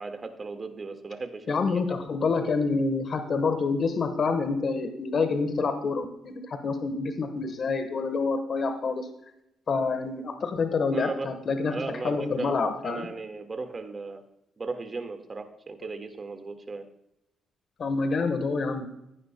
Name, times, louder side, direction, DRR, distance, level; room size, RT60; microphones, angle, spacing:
voice 1, 0.0-1.5 10.9-11.4 11.7-12.5 12.8-14.2 14.6-16.9, right 3 dB, 35° right, 6 dB, 1.7 m, -36 dB
voice 2, 1.5-9.1 9.7-11.8 12.0-13.1 17.8-19.0, left 4 dB, 50° left, 8 dB, 1.2 m, -27 dB
15.0 x 11.0 x 2.2 m, 0.83 s
cardioid pair, 90°, 0 cm